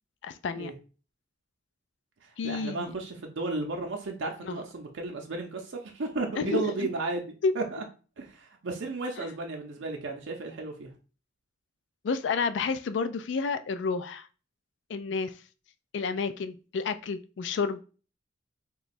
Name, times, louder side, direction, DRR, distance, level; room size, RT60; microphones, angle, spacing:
voice 1, 0.2-0.7 2.4-2.9 4.4-4.6 6.4-6.9 7.4-7.5 9.2-9.3 12.0-14.3 14.9-15.3 15.9-17.8, left 5 dB, 70° left, 0.3 m, -30 dB
voice 2, 2.2-7.2 7.5-7.8 8.2-10.9, right 3 dB, 80° right, 0.6 m, -34 dB
3.0 x 2.3 x 4.1 m
head